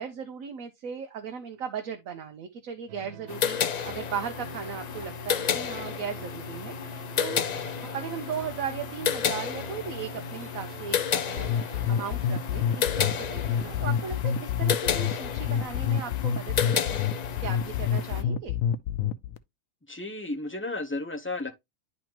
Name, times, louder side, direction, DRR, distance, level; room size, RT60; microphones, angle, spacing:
voice 1, 0.0-7.4 7.8-18.6, right 7 dB, 85° right, 1.2 m, -37 dB
sound 1, 2.9-14.2, right 8 dB, 65° right, 0.8 m, -46 dB
sound 2, 3.3-18.2, left 7 dB, 65° left, 0.4 m, -32 dB
sound 3, 11.4-19.4, left 8 dB, 85° left, 1.0 m, -27 dB
voice 2, 19.9-21.6, left 2 dB, 10° left, 0.6 m, -33 dB
10.5 x 4.1 x 2.9 m
omnidirectional pair, 1.4 m